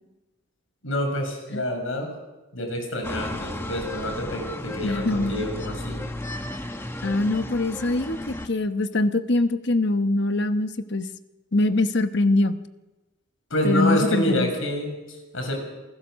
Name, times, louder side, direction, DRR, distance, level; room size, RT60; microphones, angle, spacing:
voice 1, 0.8-2.1 2.5-6.0 13.5-15.6, equal, 70° left, 3 dB, 6.3 m, -27 dB
sound 1, 3.0-8.5, left 1 dB, 10° left, 1.2 m, -34 dB
voice 2, 4.8-5.3 7.0-11.1 11.5-12.6 13.6-14.5, left 2 dB, 55° left, 9 dB, 1.1 m, -23 dB
28.0 x 15.5 x 6.4 m, 1.1 s
head